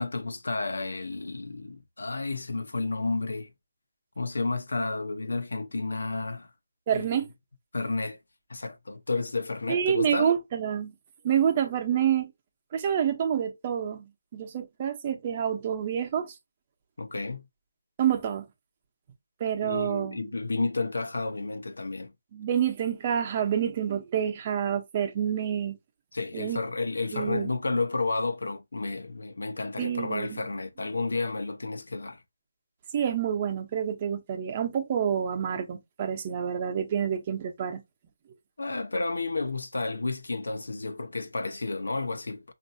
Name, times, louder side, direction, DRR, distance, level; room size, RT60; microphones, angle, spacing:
voice 1, 0.0-3.5 4.2-6.5 6.9-7.2 7.7-8.2 8.5-10.3 17.0-17.4 19.6-22.1 26.1-32.2 38.6-42.5, left 3 dB, 80° left, 0.8 m, -31 dB
voice 2, 6.9-7.3 9.7-10.9 11.2-12.3 12.7-14.0 14.3-16.3 18.0-18.4 19.4-20.3 22.3-25.8 26.3-26.6 27.1-27.5 29.8-30.4 32.9-37.8, right 8 dB, 30° right, 0.8 m, -28 dB
5.2 x 2.6 x 2.7 m
figure-of-eight pair, 160°, 0 cm